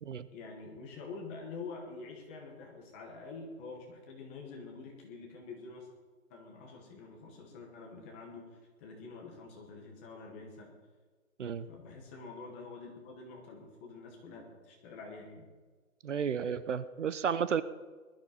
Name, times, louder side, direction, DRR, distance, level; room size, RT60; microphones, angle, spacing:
voice 1, 0.3-5.9 6.3-10.7 11.7-15.5, left 4 dB, 10° left, 0 dB, 0.9 m, -47 dB
voice 2, 16.0-17.6, right 7 dB, 55° right, 15 dB, 0.8 m, -32 dB
20.5 x 12.5 x 4.3 m, 1.4 s
hypercardioid pair, 165°, 42 cm